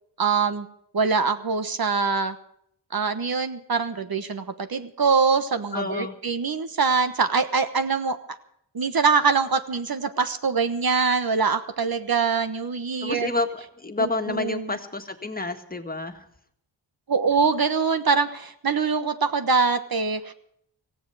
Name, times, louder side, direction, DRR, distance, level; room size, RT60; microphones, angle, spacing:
voice 1, 0.2-0.7 0.9-2.4 2.9-8.2 8.7-13.3 14.0-14.7 17.1-20.3, right 5 dB, 55° right, 10 dB, 1.3 m, -24 dB
voice 2, 5.7-6.1 13.0-16.3, left 2 dB, 20° left, 5 dB, 1.8 m, -29 dB
17.5 x 15.5 x 4.9 m, 0.69 s
wide cardioid pair, 85°, 43 cm